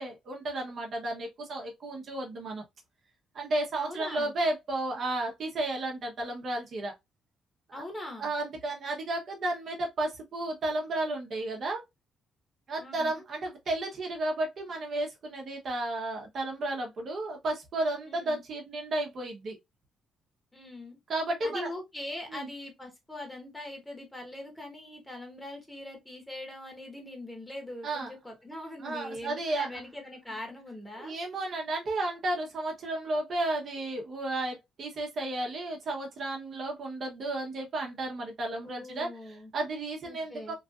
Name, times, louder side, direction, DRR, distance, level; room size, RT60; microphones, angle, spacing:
voice 1, 0.0-2.6 3.3-6.9 7.7-7.8 8.2-11.8 12.7-19.6 21.1-21.7 22.3-22.5 27.8-28.1 28.8-29.8 31.0-40.5, right 2 dB, 55° right, 1.0 m, -33 dB
voice 2, 3.8-4.3 7.7-8.3 12.8-13.2 18.1-18.4 20.5-21.0 21.4-31.1 38.6-39.5 40.0-40.5, left 1 dB, 15° left, 1.4 m, -42 dB
3.2 x 2.5 x 2.4 m
cardioid pair, 90°, 0 cm